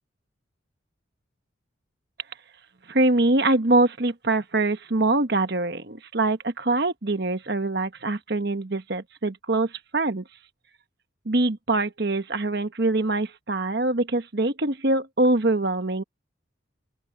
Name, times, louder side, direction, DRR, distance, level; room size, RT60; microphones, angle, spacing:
voice 1, 2.9-10.2 11.2-16.0, right 2 dB, 55° right, 1.2 m, -24 dB
open air
head